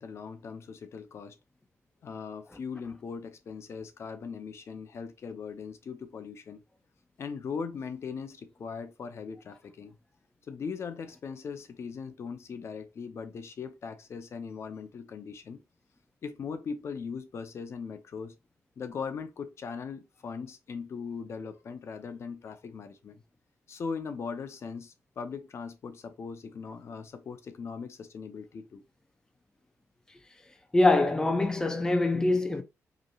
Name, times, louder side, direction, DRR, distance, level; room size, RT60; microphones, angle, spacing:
voice 1, 0.0-1.4 2.0-6.6 7.2-10.0 10.5-15.6 16.2-18.4 18.8-23.2 23.7-28.8, left 5 dB, 55° left, 0.7 m, -39 dB
voice 2, 30.7-32.6, left 2 dB, 10° left, 0.6 m, -24 dB
5.0 x 3.1 x 2.4 m
cardioid pair, 120°, 5 cm